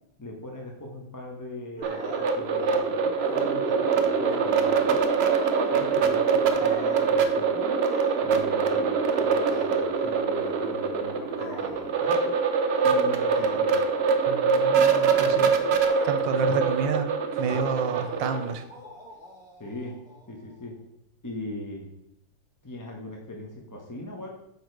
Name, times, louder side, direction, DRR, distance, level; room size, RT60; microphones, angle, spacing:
voice 1, 0.2-3.6 3.9-5.2 5.7-7.8 8.2-12.3 12.8-13.8 19.6-19.9 20.3-20.7 21.2-21.9 22.6-24.3, left 1 dB, 15° left, 0 dB, 0.8 m, -40 dB
sound 1, 1.8-4.8 5.3-6.0 6.4-7.1 7.8-8.5 9.5-9.7 10.4-10.5 11.3-12.0 12.5-13.0 13.3-13.6 14.2-14.4 14.7-16.5 17.3-20.7, right 1 dB, 5° right, 2.5 m, -43 dB
sound 2, 1.8-18.5, right 5 dB, 70° right, 0.6 m, -24 dB
voice 2, 14.3-17.0 17.4-18.6, right 5 dB, 85° right, 9 dB, 1.5 m, -30 dB
7.4 x 5.1 x 4.6 m, 0.77 s
omnidirectional pair, 2.0 m